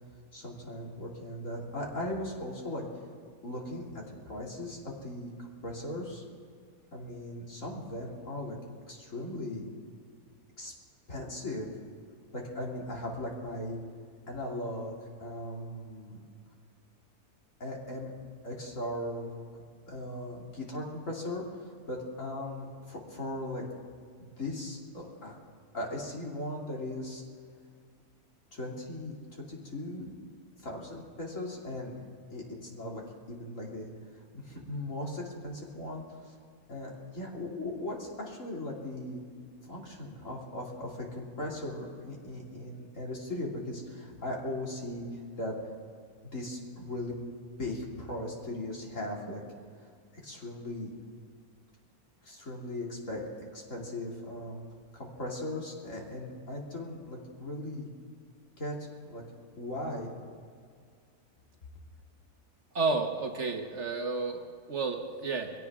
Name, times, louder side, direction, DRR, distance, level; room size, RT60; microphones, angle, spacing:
voice 1, 0.3-2.8 3.4-6.2 6.9-8.6 8.9-9.7 10.6-10.7 11.1-11.7 12.3-13.8 14.3-14.9 15.2-16.2 17.6-18.1 18.4-19.6 19.9-23.6 24.2-25.4 25.7-27.2 28.5-30.1 30.6-32.0 32.3-33.0 33.3-33.9 34.1-36.4 36.7-39.2 39.7-45.6 46.2-47.1 47.6-49.4 50.2-50.9 52.2-54.6 54.9-57.9 58.6-59.2 59.6-60.1, left 1 dB, 55° left, -2 dB, 3.0 m, -38 dB
voice 2, 62.7-65.5, right 3 dB, 50° right, 4 dB, 1.3 m, -31 dB
22.5 x 16.5 x 3.6 m, 2.1 s
omnidirectional pair, 1.6 m